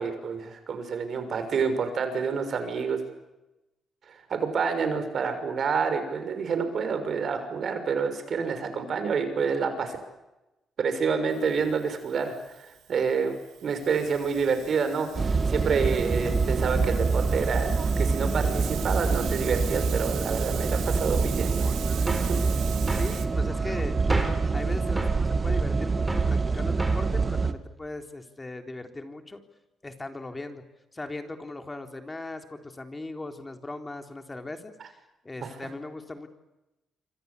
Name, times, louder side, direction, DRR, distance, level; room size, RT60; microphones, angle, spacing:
voice 1, 0.0-3.0 4.3-10.0 10.8-13.3 13.6-21.7 22.1-22.4 22.9-23.0, right 5 dB, 55° right, 9 dB, 6.3 m, -28 dB
Hiss, 11.3-23.3, right 10 dB, 75° right, 2.7 m, -41 dB
sound 1, 15.2-27.5, right 4 dB, 30° right, 2.2 m, -26 dB
sound 2, 22.1-22.4 22.9-23.1 24.1-24.5 25.0-25.2 26.1-26.3 26.8-27.1, right 1 dB, 15° right, 5.9 m, -31 dB
voice 2, 22.9-24.0 24.5-29.4 29.8-30.6 30.9-35.0 35.2-36.3, left 2 dB, 20° left, 6 dB, 3.7 m, -38 dB
27.0 x 26.0 x 8.5 m, 1.0 s
cardioid pair, 90°, 0 cm